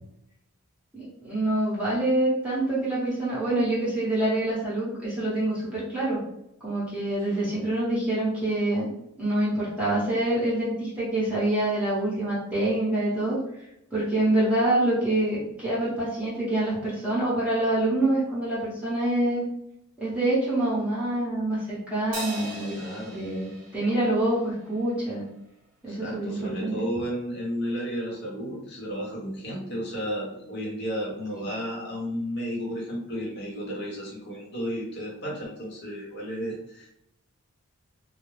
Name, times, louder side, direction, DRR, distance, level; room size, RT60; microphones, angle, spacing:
voice 1, 0.9-6.2 6.6-8.9 9.2-13.4 13.9-19.5 20.0-22.8 23.1-25.2 25.8-26.9, right 1 dB, 5° right, -9 dB, 0.9 m, -26 dB
Crash cymbal, 22.1-24.8, right 1 dB, 40° right, 0.7 m, -39 dB
voice 2, 22.8-23.2 25.9-36.9, equal, 50° left, -3 dB, 0.9 m, -33 dB
2.3 x 2.1 x 3.1 m, 0.82 s
head